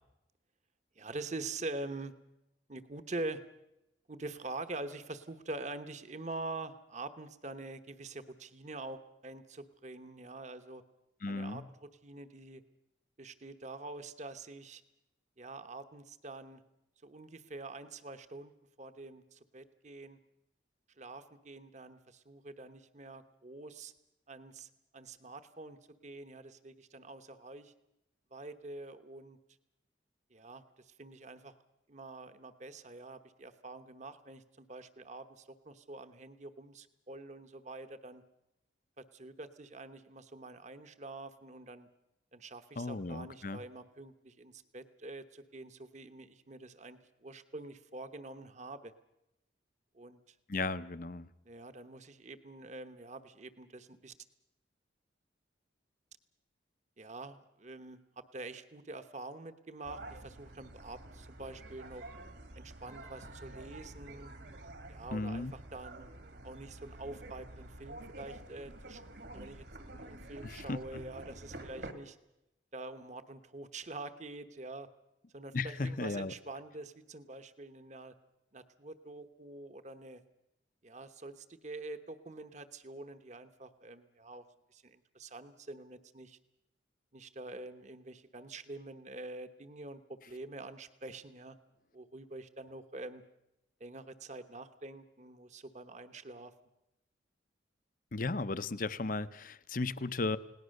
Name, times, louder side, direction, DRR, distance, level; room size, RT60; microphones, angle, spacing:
voice 1, 0.9-2.1 2.7-3.4 4.1-10.8 11.3-12.6 13.2-14.8 15.4-16.6 17.0-18.5 18.8-20.2 21.0-23.9 24.3-25.8 26.0-27.7 28.3-29.4 30.3-31.6 31.9-38.2 39.0-41.9 42.3-48.9 49.9-50.4 51.4-54.1 57.0-62.1 62.6-64.3 64.9-66.1 66.4-69.0 69.3-72.2 72.7-74.9 75.3-78.1 78.5-80.2 80.8-86.4 87.1-91.6 91.9-93.2 93.8-96.5, right 2 dB, 40° right, 10 dB, 1.1 m, -46 dB
voice 2, 11.2-11.6 42.8-43.6 50.5-51.3 65.1-65.5 70.4-71.0 75.5-76.3 98.1-100.4, left 3 dB, 45° left, 14 dB, 0.8 m, -35 dB
sound 1, 59.8-71.9, right 2 dB, 60° right, 2.2 m, -49 dB
29.5 x 18.5 x 6.6 m, 0.88 s
head